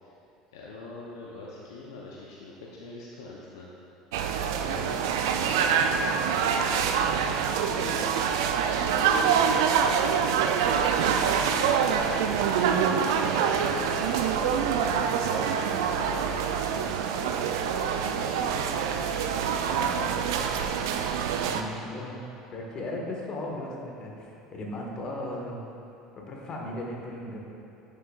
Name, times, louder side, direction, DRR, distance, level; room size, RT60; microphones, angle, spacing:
voice 1, 0.5-3.7 4.3-6.9 7.4-8.3 8.8-9.9 10.7-11.2 11.4-12.0 12.7-16.4 17.1-18.6 19.3-20.3, left 3 dB, 80° left, -4 dB, 0.8 m, -42 dB
sound 1, 4.1-21.6, right 7 dB, 75° right, 0.4 m, -25 dB
voice 2, 21.4-22.2 22.5-25.6 26.1-27.4, left 1 dB, 40° left, -1 dB, 1.6 m, -36 dB
11.0 x 6.7 x 2.5 m, 3.0 s
hypercardioid pair, 70°, 2 cm